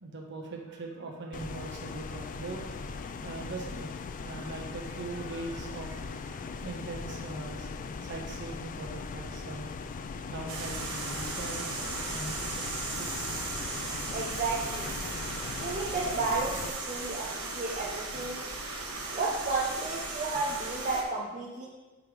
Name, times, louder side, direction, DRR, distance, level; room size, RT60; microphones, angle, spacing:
voice 1, 0.0-3.9 4.2-7.7 8.0-9.8 10.3-12.7 12.9-13.3, right 3 dB, 55° right, 1 dB, 1.1 m, -41 dB
sound 1, 1.3-16.7, left 4 dB, 35° left, 0.3 m, -39 dB
sound 2, 10.5-21.0, right 3 dB, 80° right, 1.1 m, -37 dB
voice 2, 14.1-14.9 15.5-18.4 19.1-21.7, right 3 dB, 35° right, -4 dB, 0.7 m, -32 dB
5.6 x 4.9 x 4.9 m, 1.2 s
head